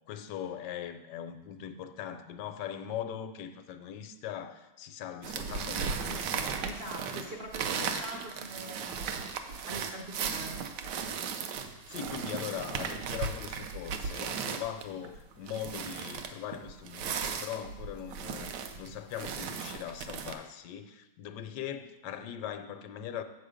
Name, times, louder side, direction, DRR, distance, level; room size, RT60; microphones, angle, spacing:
voice 1, 0.1-6.6 7.8-8.1 11.9-23.2, left 9 dB, 80° left, 10 dB, 1.2 m, -40 dB
sound 1, 5.2-20.3, right 6 dB, 90° right, 1.3 m, -36 dB
voice 2, 6.6-9.1 9.6-10.6, right 1 dB, 55° right, 1 dB, 0.6 m, -43 dB
7.5 x 6.6 x 5.0 m, 1.0 s
omnidirectional pair, 1.8 m